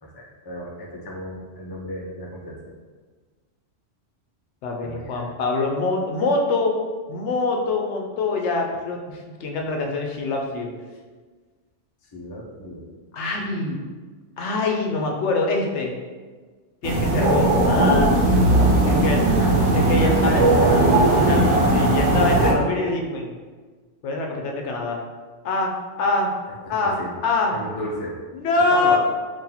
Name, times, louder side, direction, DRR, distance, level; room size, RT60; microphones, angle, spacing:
voice 1, 0.0-2.6 4.8-5.3 12.1-12.8 18.7-21.0 26.7-27.1 27.5-28.1 28.7-29.0, left 1 dB, 35° left, -3 dB, 0.3 m, -34 dB
voice 2, 4.6-6.7 7.1-10.7 13.1-13.8 14.4-15.9 16.8-18.6 18.9-19.2 19.7-20.4 21.3-23.3 24.0-25.0 25.4-25.7 26.0-26.3 26.7-27.0 27.2-27.5 28.3-29.0, left 3 dB, 75° left, 1 dB, 0.8 m, -24 dB
sound 1, 16.8-22.5, right 2 dB, 75° right, 0.9 m, -18 dB
2.8 x 2.6 x 3.8 m, 1.4 s
omnidirectional pair, 1.2 m